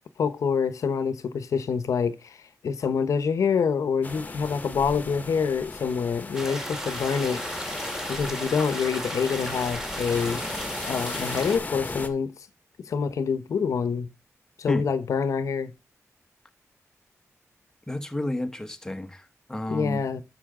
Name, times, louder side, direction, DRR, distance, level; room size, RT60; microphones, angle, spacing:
voice 1, 0.2-7.4 8.1-10.4 10.8-12.3 12.8-14.1 14.6-15.7 19.7-20.2, left 6 dB, 75° left, 1.0 m, -26 dB
sound 1, 4.0-12.1, left 3 dB, 30° left, 1.4 m, -37 dB
sound 2, 6.3-11.6, equal, 10° right, 2.3 m, -34 dB
voice 2, 17.9-20.0, left 1 dB, 10° left, 1.3 m, -31 dB
12.0 x 5.7 x 3.7 m
wide cardioid pair, 135°, 5 cm